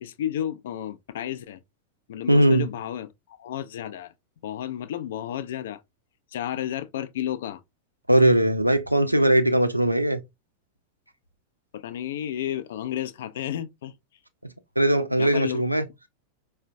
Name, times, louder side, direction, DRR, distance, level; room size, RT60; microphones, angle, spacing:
voice 1, 0.0-1.6 2.1-4.1 4.4-5.8 6.3-7.6 11.7-13.9 15.2-15.6, left 11 dB, 60° left, 0.3 m, -32 dB
voice 2, 2.3-2.7 8.1-10.2 14.8-15.8, right 1 dB, 90° right, 0.4 m, -20 dB
4.3 x 2.1 x 2.5 m
figure-of-eight pair, 90°, 0 cm